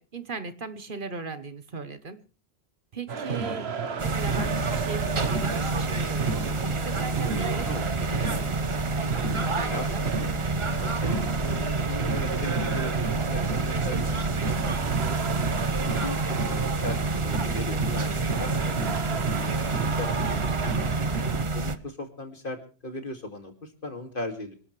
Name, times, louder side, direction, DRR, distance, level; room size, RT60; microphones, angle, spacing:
voice 1, 0.0-2.2 2.9-3.7 4.0-7.8 8.2-8.5 9.3-10.0 16.5-16.6 20.2-20.7, right 4 dB, 55° right, 11 dB, 1.3 m, -38 dB
sound 1, 3.1-21.4, right 5 dB, 85° right, 1.4 m, -32 dB
sound 2, 4.0-21.8, right 3 dB, 30° right, 0.8 m, -28 dB
voice 2, 9.4-10.1 10.8-15.4 16.0-17.0 17.2-20.8 21.5-22.6 22.8-24.5, left 2 dB, 55° left, 5 dB, 2.6 m, -38 dB
25.5 x 12.5 x 3.3 m, 0.36 s
omnidirectional pair, 1.1 m